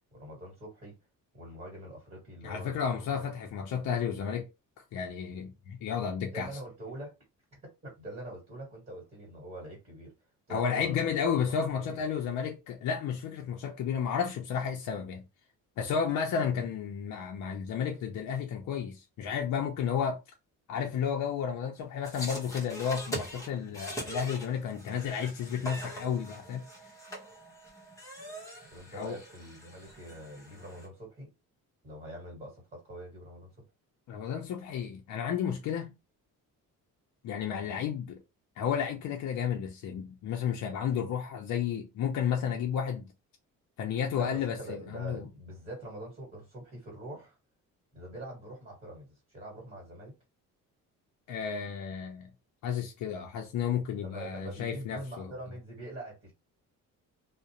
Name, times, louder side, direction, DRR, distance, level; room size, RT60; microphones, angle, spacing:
voice 1, 0.1-1.0 1.3-3.4 6.3-7.1 7.6-10.1 10.5-11.1 11.8-12.1 23.6-23.9 28.7-31.3 31.8-33.5 37.6-37.8 44.1-47.4 47.9-50.1 53.9-56.3, right 1 dB, 25° right, 1.4 m, -44 dB
voice 2, 2.4-4.5 4.9-6.5 10.5-15.2 15.8-20.2 20.7-26.6 28.9-29.2 34.1-36.0 37.2-38.2 38.6-43.1 43.8-45.3 51.3-52.3 52.6-55.3, left 7 dB, 60° left, 0.5 m, -32 dB
sound 1, 22.0-30.9, right 1 dB, 10° left, 0.8 m, -42 dB
2.4 x 2.1 x 2.8 m
cardioid pair, 155°, 34 cm